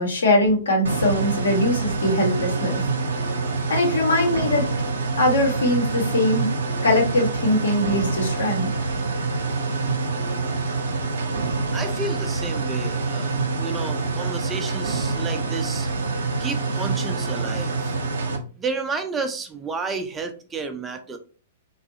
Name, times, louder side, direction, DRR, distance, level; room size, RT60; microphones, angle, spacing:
voice 1, 0.0-2.8 3.7-4.7 5.2-6.5 6.8-8.7, left 1 dB, 70° left, 0 dB, 1.1 m, -21 dB
sound 1, 0.8-18.4, right 3 dB, 70° right, 0.7 m, -26 dB
voice 2, 11.7-13.3 13.6-15.9 16.4-17.9 18.6-21.2, right 4 dB, 15° right, 6 dB, 0.4 m, -31 dB
2.6 x 2.4 x 2.7 m, 0.37 s
figure-of-eight pair, 110°, 0 cm